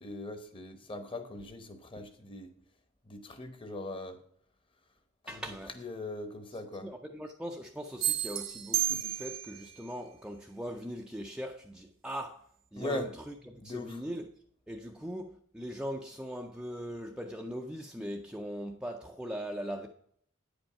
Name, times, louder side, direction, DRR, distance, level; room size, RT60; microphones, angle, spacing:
voice 1, 0.0-2.5 3.1-4.2 5.3-5.4 5.8-6.9 12.8-13.0 13.6-14.0, left 1 dB, 25° left, 0.9 m, -40 dB
voice 2, 5.3-5.8 6.5-12.5 12.7-14.3 14.7-19.9, equal, 5° right, 0.4 m, -40 dB
sound 1, 8.0-9.7, right 12 dB, 70° right, 1.0 m, -31 dB
9.3 x 5.3 x 5.6 m
head